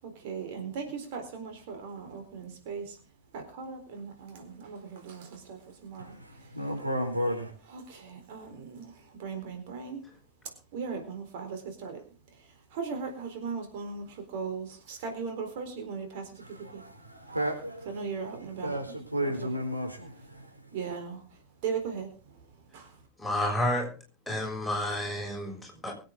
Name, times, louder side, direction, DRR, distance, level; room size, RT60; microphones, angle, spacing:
voice 1, 0.0-3.0 3.3-6.6 7.7-10.1 10.4-16.9 17.9-18.8 19.4-19.5 20.7-23.1, right 5 dB, 50° right, 5 dB, 4.1 m, -38 dB
voice 2, 6.0-7.5 16.4-18.0 18.6-20.8, equal, 85° right, 2 dB, 4.4 m, -33 dB
voice 3, 23.2-23.9 24.3-25.9, left 1 dB, 5° left, -1 dB, 6.5 m, -30 dB
23.5 x 8.8 x 3.9 m, 0.36 s
figure-of-eight pair, 90°, 0 cm